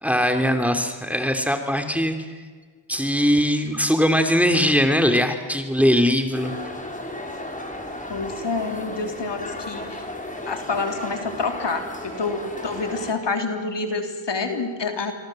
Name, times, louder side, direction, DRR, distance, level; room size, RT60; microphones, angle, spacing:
voice 1, 0.0-2.2 2.9-6.5, equal, 5° right, 6 dB, 3.2 m, -20 dB
sound 1, 6.3-13.1, left 1 dB, 15° left, 5.2 m, -34 dB
voice 2, 8.1-10.1 10.5-15.1, left 4 dB, 65° left, 5 dB, 3.4 m, -28 dB
27.0 x 23.0 x 7.8 m, 1.5 s
cardioid pair, 45°, 46 cm